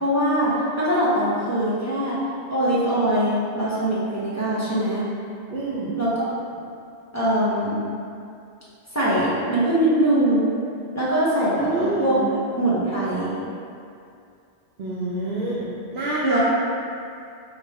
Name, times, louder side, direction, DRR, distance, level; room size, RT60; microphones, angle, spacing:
voice 1, 0.0-2.2 2.5-5.0 6.0-6.2 7.1-7.8 8.9-10.5 10.9-12.1 12.6-13.3 16.2-16.4, right 1 dB, 15° left, -9 dB, 0.7 m, -22 dB
voice 2, 5.5-6.0 11.6-12.2 14.8-16.4, right 2 dB, 60° right, -8 dB, 0.7 m, -27 dB
4.8 x 2.3 x 3.4 m, 2.5 s
omnidirectional pair, 1.2 m